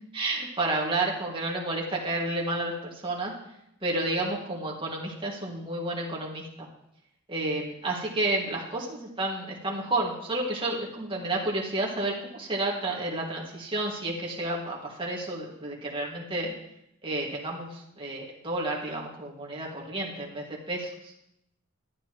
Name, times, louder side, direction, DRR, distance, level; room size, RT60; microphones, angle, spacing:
voice 1, 0.1-3.3 3.8-6.7 7.3-16.5 17.0-21.1, right 2 dB, 25° right, -2 dB, 2.0 m, -31 dB
12.0 x 9.8 x 3.1 m, 0.79 s
head